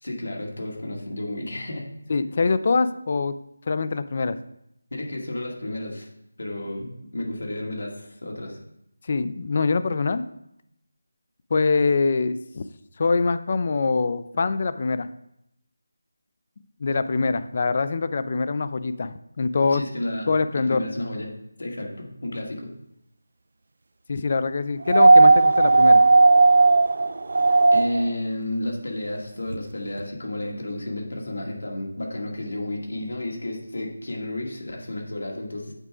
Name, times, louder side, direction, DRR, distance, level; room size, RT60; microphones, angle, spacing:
voice 1, 0.0-1.9 4.9-6.1 6.4-8.6 19.7-20.3 20.5-21.3 21.6-22.7 27.7-35.7, left 1 dB, 75° left, 0 dB, 2.1 m, -32 dB
voice 2, 2.1-3.4 3.7-4.4 9.1-10.2 11.5-12.6 13.0-15.1 16.8-19.8 20.3-20.8 24.1-26.0, left 4 dB, 40° left, 13 dB, 0.4 m, -24 dB
sound 1, 24.9-28.1 29.5-29.6, right 3 dB, 60° right, 0.3 m, -15 dB
8.0 x 4.8 x 3.7 m, 0.77 s
figure-of-eight pair, 170°, 0 cm